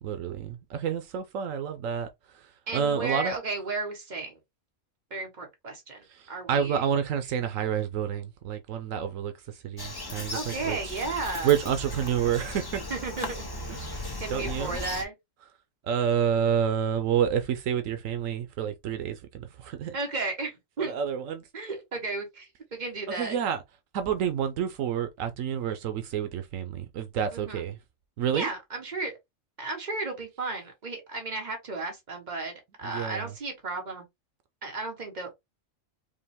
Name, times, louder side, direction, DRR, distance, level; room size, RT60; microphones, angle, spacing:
voice 1, 0.0-2.1 2.3-2.4 2.7-3.4 6.1-11.0 11.4-12.8 13.8-14.0 14.3-14.8 15.8-20.0 20.9-21.4 23.1-23.6 23.9-27.8 28.2-28.5 32.8-33.3, right 8 dB, 80° right, 1.0 m, -29 dB
voice 2, 2.7-4.4 5.1-6.8 10.3-11.6 12.9-13.4 14.2-15.1 19.9-20.9 21.5-23.4 27.3-27.6 28.3-29.1 29.6-34.0 34.6-35.4, right 3 dB, 35° right, 1.4 m, -34 dB
Bird vocalization bird call bird song, 9.8-15.0, left 1 dB, 25° left, 0.6 m, -37 dB
5.3 x 2.3 x 3.4 m
omnidirectional pair, 1.3 m